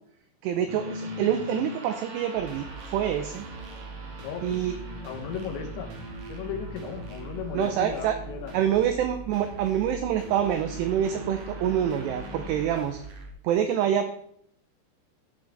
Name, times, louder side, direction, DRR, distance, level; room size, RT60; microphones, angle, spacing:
voice 1, 0.4-3.5 4.4-4.7 7.5-8.2 8.5-13.0 13.4-14.1, right 9 dB, 90° right, 8 dB, 2.4 m, -26 dB
sound 1, 0.7-12.7, equal, 55° right, 2.2 m, -41 dB
sound 2, 2.3-13.3, right 3 dB, 70° right, 2.0 m, -43 dB
voice 2, 4.2-4.7 5.0-5.9 6.3-8.5, left 8 dB, 75° left, 4 dB, 2.9 m, -36 dB
11.5 x 6.1 x 3.3 m, 0.68 s
omnidirectional pair, 5.5 m